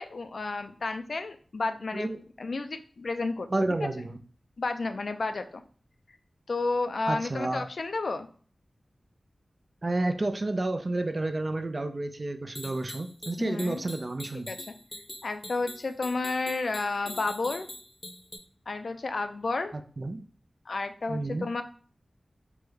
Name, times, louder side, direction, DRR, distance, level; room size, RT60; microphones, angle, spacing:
voice 1, 0.0-2.1 2.4-3.9 4.6-5.6 6.5-8.3 13.4-13.8 14.5-14.7 15.2-17.7 18.7-19.7 20.7-21.6, left 3 dB, 70° left, 8 dB, 0.3 m, -31 dB
voice 2, 3.5-4.2 7.1-7.7 9.8-14.5 20.0-20.2 21.1-21.5, right 2 dB, 45° right, 7 dB, 0.3 m, -30 dB
sound 1, 12.6-18.4, left 1 dB, 25° left, 0.6 m, -43 dB
3.4 x 2.1 x 3.1 m, 0.43 s
wide cardioid pair, 65°, 0 cm